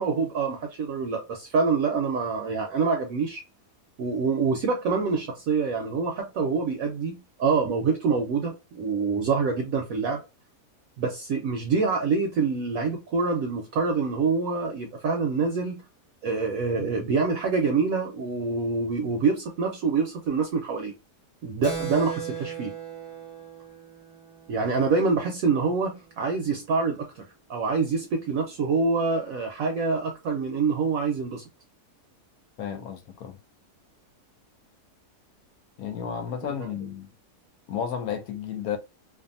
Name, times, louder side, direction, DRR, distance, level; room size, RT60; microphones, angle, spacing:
voice 1, 0.0-3.4 4.0-10.2 11.0-15.8 16.2-20.9 21.4-22.7 24.5-27.2 27.5-31.4, right 4 dB, 70° right, 0.9 m, -26 dB
Keyboard (musical), 21.6-25.7, right 6 dB, 25° left, 1.1 m, -38 dB
voice 2, 32.6-33.4 35.8-37.1 37.7-38.8, left 8 dB, 70° left, 1.0 m, -32 dB
2.6 x 2.4 x 2.5 m
omnidirectional pair, 1.7 m